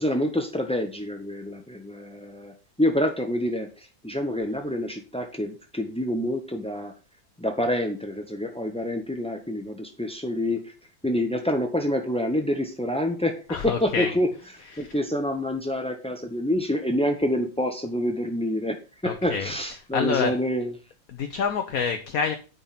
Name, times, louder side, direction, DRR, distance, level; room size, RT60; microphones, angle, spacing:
voice 1, 0.0-6.9 7.4-10.7 11.0-14.3 14.6-18.8 19.0-20.7, left 1 dB, 10° left, 4 dB, 0.4 m, -27 dB
voice 2, 13.5-14.1 14.7-14.9 19.0-19.5 19.9-20.3 21.1-22.3, left 6 dB, 60° left, 6 dB, 1.2 m, -27 dB
9.5 x 5.4 x 5.7 m, 0.34 s
omnidirectional pair, 2.0 m